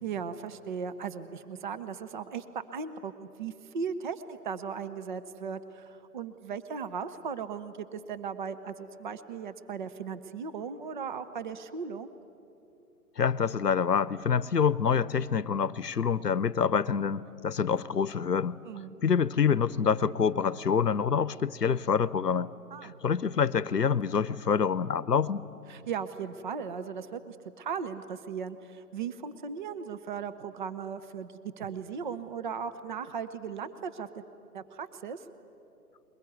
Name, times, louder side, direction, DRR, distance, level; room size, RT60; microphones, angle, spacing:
voice 1, 0.0-2.4 2.7-12.1 18.6-19.0 22.7-23.0 25.7-34.2 34.5-35.3, right 6 dB, 30° right, 12 dB, 0.7 m, -37 dB
voice 2, 13.2-18.6 19.0-22.5 22.8-25.4, left 6 dB, 80° left, 19 dB, 0.8 m, -26 dB
22.0 x 20.5 x 9.4 m, 2.8 s
figure-of-eight pair, 130°, 47 cm